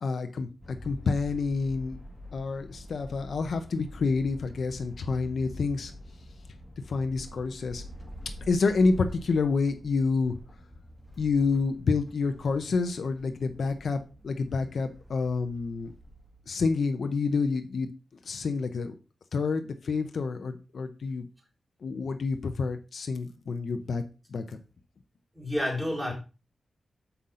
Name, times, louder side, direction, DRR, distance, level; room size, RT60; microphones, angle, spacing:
voice 1, 0.0-2.0 2.3-5.9 6.9-7.8 8.5-10.4 11.2-15.9 16.5-17.9 18.2-19.0 19.3-21.3 21.8-24.0 24.3-24.6, left 4 dB, 65° left, 0.7 m, -28 dB
sound 1, 0.6-16.5, left 1 dB, 5° left, 1.5 m, -46 dB
voice 2, 25.3-26.1, left 1 dB, 15° right, 3.8 m, -29 dB
7.0 x 5.7 x 3.8 m
wide cardioid pair, 130°, 0 cm